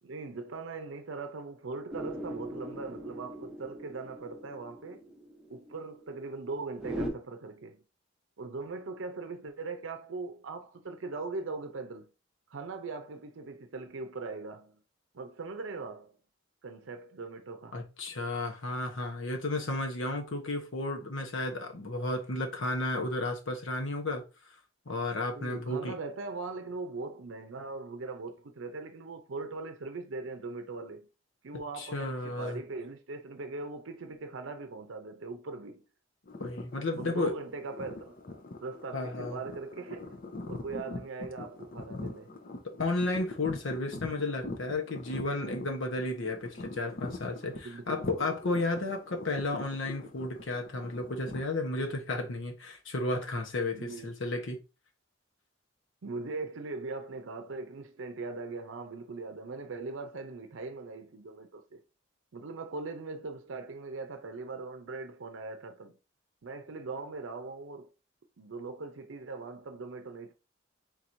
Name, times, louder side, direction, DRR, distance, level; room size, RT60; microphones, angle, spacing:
voice 1, 0.0-5.0 5.5-7.8 8.4-12.1 12.5-14.8 15.1-16.2 16.6-17.8 25.3-31.1 31.4-35.8 36.9-38.2 38.6-40.2 40.5-42.3 47.6-48.1 53.7-54.1 56.0-61.8 62.3-66.0 66.4-67.9 68.4-70.3, right 3 dB, 85° right, 0.6 m, -40 dB
sound 1, 1.9-7.1, right 1 dB, 5° right, 0.8 m, -40 dB
voice 2, 17.7-24.2 24.9-25.9 31.8-32.6 36.4-37.3 38.9-39.4 42.6-54.6, left 2 dB, 80° left, 1.0 m, -33 dB
sound 2, 36.3-51.4, left 2 dB, 45° left, 0.7 m, -42 dB
4.4 x 3.9 x 2.6 m
head